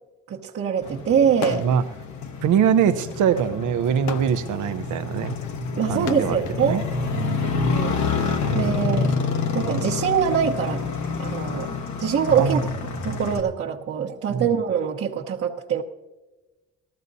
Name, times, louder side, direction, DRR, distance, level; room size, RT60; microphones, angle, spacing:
voice 1, 0.3-1.7 5.7-6.8 7.4-8.0 8.5-9.2 9.5-10.9 11.2-12.6 13.0-15.8, right 7 dB, 50° right, -5 dB, 1.1 m, -24 dB
Motorcycle, 0.8-13.4, left 5 dB, 70° left, 1.3 m, -28 dB
sound 1, 1.3-1.9 2.3-6.6 7.5-9.2, left 10 dB, 90° left, 0.5 m, -36 dB
voice 2, 1.5-1.8 2.4-5.3 5.9-6.8 7.1-7.6 8.5-9.1 12.4-12.6 14.3-14.5, right 8 dB, 80° right, 10 dB, 0.8 m, -23 dB
19.0 x 14.0 x 2.7 m, 1.2 s
cardioid pair, 90°, 30 cm